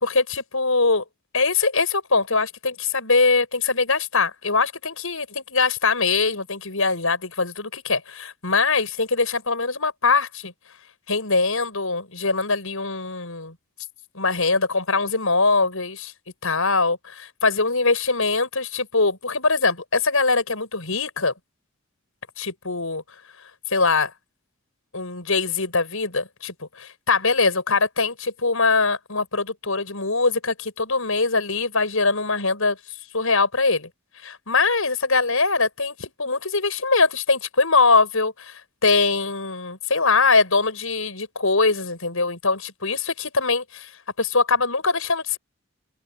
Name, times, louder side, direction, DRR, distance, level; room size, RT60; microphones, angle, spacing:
voice 1, 0.0-1.0 1.3-10.5 11.1-13.5 14.1-16.1 16.4-17.0 17.4-21.3 22.4-23.0 23.7-24.1 24.9-32.8 33.1-33.9 34.2-43.9 44.2-45.4, left 4 dB, 75° left, 5.9 m, -22 dB
open air
head